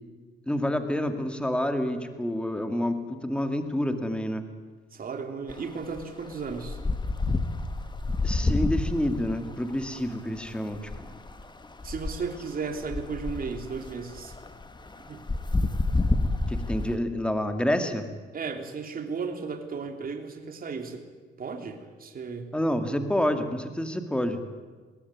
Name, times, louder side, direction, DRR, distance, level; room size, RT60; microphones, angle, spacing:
voice 1, 0.5-4.5 8.2-11.1 16.5-18.1 22.5-24.4, left 1 dB, 5° left, 7 dB, 2.4 m, -28 dB
voice 2, 4.9-6.8 11.8-14.3 15.1-15.2 18.3-21.0 21.4-22.5, right 5 dB, 45° right, 5 dB, 3.1 m, -35 dB
sound 1, 5.5-5.6 5.9-16.9, left 2 dB, 20° left, 1.8 m, -29 dB
21.5 x 18.0 x 9.7 m, 1.4 s
cardioid pair, 90°, 20 cm